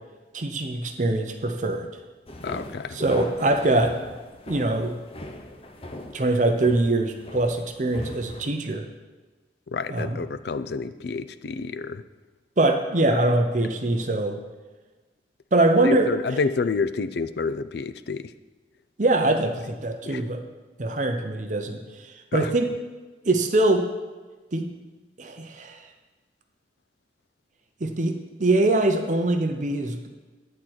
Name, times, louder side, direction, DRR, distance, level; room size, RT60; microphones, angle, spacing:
voice 1, 0.3-1.9 2.9-3.9 4.5-5.0 6.1-8.8 9.9-10.2 12.6-14.4 15.5-16.4 19.0-20.4 20.8-22.7 23.3-23.9 24.5-24.7 25.2-25.8 27.8-30.1, right 2 dB, 45° right, 4 dB, 0.7 m, -23 dB
sound 1, 2.3-8.5, left 1 dB, 30° left, 0.8 m, -39 dB
voice 2, 2.4-3.0 9.7-12.0 13.1-13.2 15.8-18.3 20.0-20.2 22.3-22.5, left 4 dB, 60° left, 12 dB, 0.4 m, -29 dB
11.0 x 4.4 x 7.9 m, 1.3 s
head